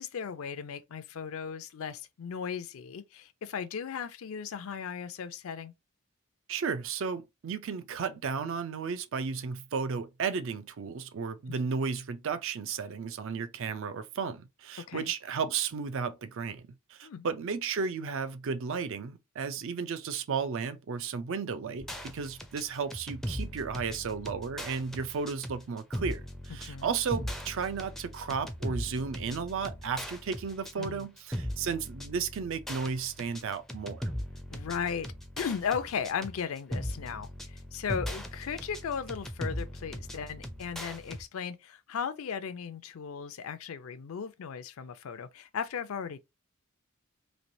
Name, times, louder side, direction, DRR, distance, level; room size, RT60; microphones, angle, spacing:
voice 1, 0.0-5.7 11.5-11.7 14.9-15.1 17.0-17.3 26.7-27.0 30.8-31.1 34.5-35.1 35.4-46.2, left 7 dB, 70° left, 0.4 m, -36 dB
voice 2, 6.5-34.1, right 5 dB, 60° right, 0.4 m, -34 dB
sound 1, 21.8-41.2, equal, ahead, 0.4 m, -39 dB
3.2 x 2.9 x 2.6 m
head